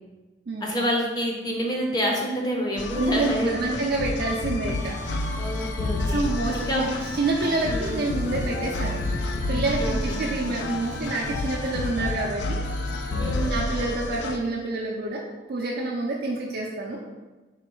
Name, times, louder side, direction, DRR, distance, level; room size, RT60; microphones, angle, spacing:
voice 1, 0.6-3.8 5.4-6.2 6.5-6.9 7.7-8.0 9.8-10.2 13.2-13.6, equal, 20° left, -1 dB, 0.6 m, -28 dB
sound 1, 2.8-14.4, left 2 dB, 70° left, 0.3 m, -30 dB
voice 2, 2.9-5.0 6.1-12.6 13.5-17.0, right 2 dB, 55° right, -3 dB, 0.4 m, -28 dB
sound 2, 4.7-13.5, equal, 45° left, 1.2 m, -40 dB
4.1 x 3.0 x 3.0 m, 1.2 s
head